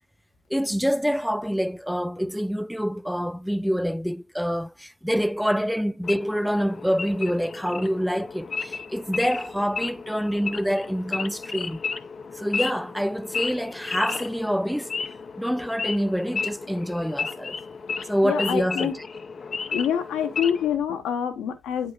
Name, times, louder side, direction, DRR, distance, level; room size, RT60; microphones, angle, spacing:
voice 1, 0.5-11.8 12.3-14.9 15.4-17.6 18.1-18.9, equal, ahead, 0.3 m, -26 dB
Wild animals / Idling, 6.0-20.8, left 5 dB, 40° left, 0.7 m, -33 dB
voice 2, 18.0-18.9 19.7-21.9, left 8 dB, 70° left, 1.3 m, -26 dB
8.1 x 6.6 x 2.4 m
supercardioid pair, 70°, 0 cm